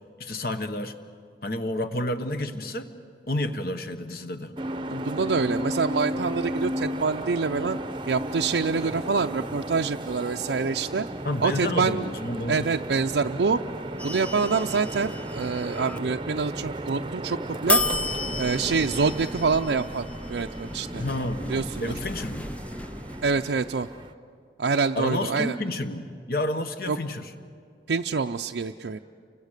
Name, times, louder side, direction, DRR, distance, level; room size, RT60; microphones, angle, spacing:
voice 1, 0.2-0.9 1.4-2.9 3.3-4.5 11.2-12.7 21.0-21.5 21.8-22.5 25.0-27.3, left 1 dB, 55° left, 9 dB, 1.3 m, -30 dB
sound 1, 4.6-24.1, right 1 dB, 30° right, 0.7 m, -35 dB
voice 2, 4.9-7.8 8.1-11.1 11.4-12.1 12.5-13.6 14.0-17.8 18.4-21.0 21.5-21.9 23.2-23.9 24.6-25.6 26.9-27.0 27.9-29.0, right 4 dB, 80° right, 4 dB, 0.5 m, -26 dB
sound 2, 14.0-16.0 17.7-23.7, left 2 dB, 5° left, 0.5 m, -32 dB
28.5 x 24.5 x 6.6 m, 2.3 s
head